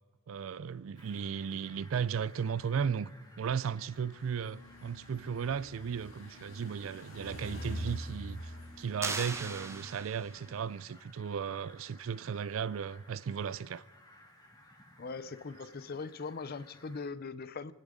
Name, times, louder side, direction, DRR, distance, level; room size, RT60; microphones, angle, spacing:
voice 1, 0.3-3.1 3.4-13.8, right 7 dB, 80° right, 0.4 m, -35 dB
Fowl, 0.9-17.1, left 1 dB, 20° left, 2.5 m, -59 dB
sound 1, 4.2-10.4, equal, 90° left, 4.5 m, -45 dB
sound 2, 9.0-10.5, right 3 dB, 15° right, 0.9 m, -38 dB
voice 2, 15.0-17.7, left 4 dB, 50° left, 0.6 m, -40 dB
29.5 x 10.0 x 3.7 m
head